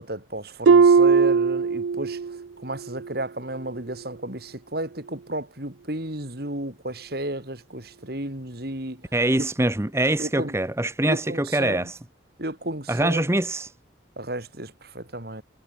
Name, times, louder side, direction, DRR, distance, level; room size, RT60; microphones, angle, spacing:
voice 1, 0.0-9.0 9.4-9.5 10.2-10.5 11.0-11.9 12.4-13.3 14.2-15.4, right 1 dB, 55° right, 4.3 m, -33 dB
Harp, 0.7-2.4 2.8-3.2 3.7-3.9, right 5 dB, 90° right, 0.5 m, -18 dB
voice 2, 9.1-12.0 12.9-13.7, right 1 dB, 15° right, 0.8 m, -24 dB
head